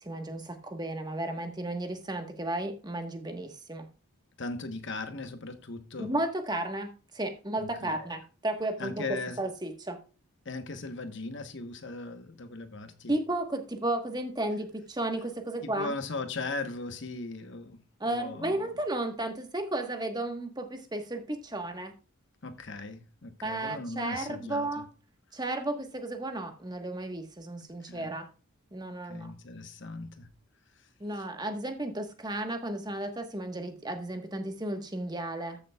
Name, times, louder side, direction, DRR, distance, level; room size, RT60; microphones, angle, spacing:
voice 1, 0.0-3.9 6.0-9.0 9.4-10.0 13.1-15.9 18.0-21.9 23.4-24.8 25.3-28.3 28.7-29.3 31.0-35.6, right 1 dB, 20° right, 1.3 m, -33 dB
voice 2, 4.4-6.1 7.6-8.1 8.8-9.4 10.4-13.1 15.6-18.7 22.4-24.8 27.6-28.1 29.1-30.3 31.1-31.3, left 3 dB, 55° left, 1.1 m, -38 dB
14.5 x 6.9 x 2.3 m
head